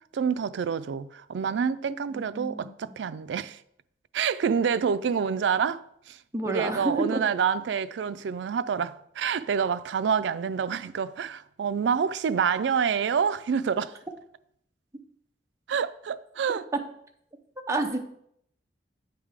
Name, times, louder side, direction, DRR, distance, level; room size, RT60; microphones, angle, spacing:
voice 1, 0.1-3.6 4.1-6.2 6.4-14.0 15.7-16.7, right 6 dB, 75° right, 0.4 m, -27 dB
voice 2, 2.1-2.7 6.3-7.2 17.7-18.0, right 2 dB, 15° right, 0.7 m, -29 dB
8.7 x 3.4 x 5.0 m
head